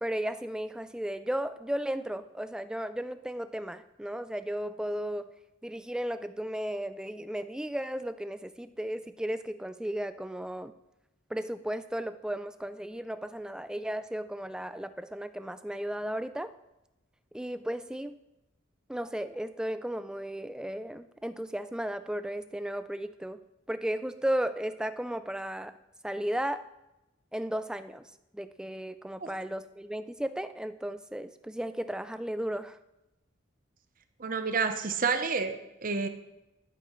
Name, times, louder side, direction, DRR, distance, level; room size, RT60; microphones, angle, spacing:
voice 1, 0.0-5.3 5.6-10.7 11.3-16.5 17.3-18.2 18.9-23.4 23.7-25.7 26.0-26.7 27.3-28.1 28.3-32.8, right 1 dB, 5° right, 11 dB, 0.3 m, -35 dB
voice 2, 34.2-36.1, right 5 dB, 45° right, 8 dB, 0.8 m, -29 dB
11.5 x 10.5 x 3.1 m, 0.93 s
head